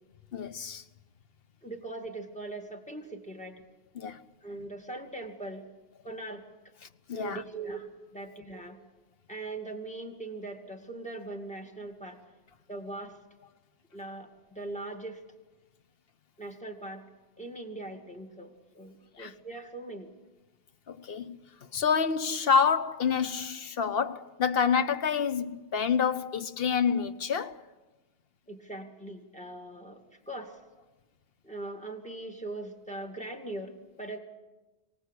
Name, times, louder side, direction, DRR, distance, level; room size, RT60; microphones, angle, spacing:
voice 1, 0.3-0.8 4.0-4.2 7.1-7.4 19.2-19.3 20.9-21.4 21.7-27.6, left 6 dB, 65° left, 1.1 m, -28 dB
voice 2, 1.6-3.6 4.4-5.6 6.0-6.5 7.1-8.8 9.3-12.2 12.7-13.2 13.9-15.2 16.4-17.1 17.4-20.1 28.5-30.6 31.4-34.2, right 2 dB, 5° left, 2.3 m, -40 dB
23.5 x 18.0 x 8.3 m
omnidirectional pair, 1.1 m